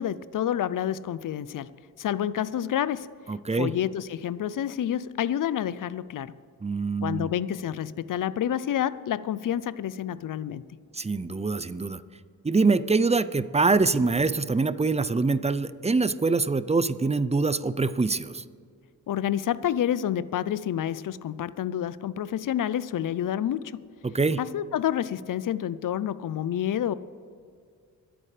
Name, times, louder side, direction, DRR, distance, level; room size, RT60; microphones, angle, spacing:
voice 1, 0.0-3.1 3.5-6.4 7.0-10.6 19.1-23.8 24.4-26.9, left 10 dB, 65° left, 17 dB, 0.6 m, -29 dB
voice 2, 3.3-3.7 6.6-7.3 10.9-12.0 12.4-18.4 24.0-24.4, right 3 dB, 20° right, 15 dB, 0.6 m, -24 dB
25.5 x 8.9 x 3.4 m, 2.1 s
cardioid pair, 50°, 36 cm